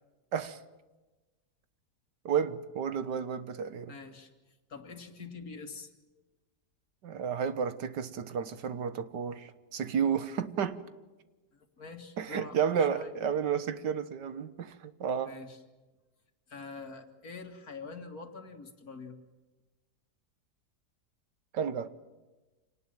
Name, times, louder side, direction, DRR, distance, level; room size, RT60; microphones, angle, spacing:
voice 1, 2.2-3.9 7.0-10.8 12.2-15.3 21.5-21.9, right 7 dB, 85° right, 1.8 m, -32 dB
voice 2, 3.9-4.3 4.7-5.9 11.5-13.1 15.2-15.6 16.5-19.2, left 4 dB, 60° left, 2.6 m, -45 dB
27.0 x 19.0 x 9.1 m
omnidirectional pair, 1.8 m